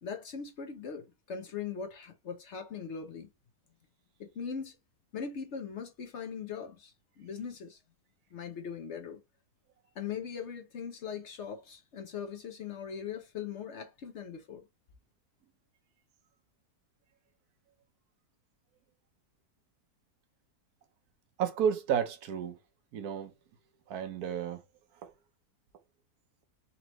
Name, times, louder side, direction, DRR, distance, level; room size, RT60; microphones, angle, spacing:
voice 1, 0.0-3.3 4.2-4.8 5.1-7.8 8.3-9.2 9.9-14.6, left 7 dB, 55° left, 0.9 m, -40 dB
voice 2, 21.4-22.6 22.9-23.3 23.9-24.7 25.0-25.1, right 8 dB, 75° right, 1.2 m, -32 dB
4.1 x 2.9 x 3.0 m
omnidirectional pair, 1.6 m